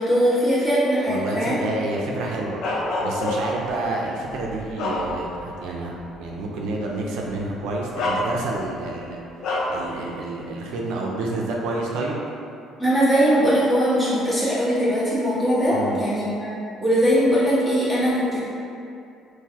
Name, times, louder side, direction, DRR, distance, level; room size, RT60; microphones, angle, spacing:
voice 1, 0.0-1.6 12.8-18.4, equal, 15° left, -11 dB, 1.3 m, -20 dB
voice 2, 1.1-2.6 3.0-9.2 9.7-12.2 15.7-16.0, right 2 dB, 85° right, -2 dB, 0.5 m, -29 dB
Bark, 2.6-3.7 4.3-5.5 6.0-6.1 7.2-7.4 7.9-8.7 9.4-9.8, left 2 dB, 65° left, 0.5 m, -27 dB
3.8 x 2.6 x 2.8 m, 2.5 s
cardioid pair, 115°, 0 cm